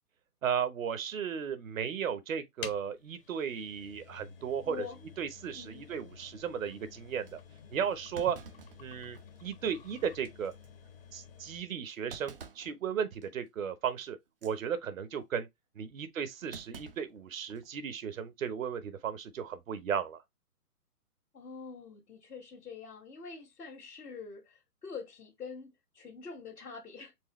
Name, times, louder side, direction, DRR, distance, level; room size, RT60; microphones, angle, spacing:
voice 1, 0.4-4.8 5.2-7.4 7.7-8.3 8.8-10.5 11.1-14.2 14.4-15.5 15.8-20.2, right 7 dB, 60° right, 1.0 m, -35 dB
sound 1, 2.6-11.7, left 7 dB, 40° left, 0.7 m, -51 dB
voice 2, 4.7-5.0 5.5-5.9 7.6-7.7 8.3-8.4 21.3-27.1, left 5 dB, 80° left, 1.7 m, -45 dB
Thump thud, 7.3-7.4 8.1-9.5 9.9-10.0 10.4-10.7 12.1-12.8 13.2-13.5 14.3-14.6 16.5-17.7 18.0-18.1 19.3-19.6, right 5 dB, 40° right, 0.4 m, -50 dB
4.7 x 3.3 x 3.1 m
hypercardioid pair, 150°, 46 cm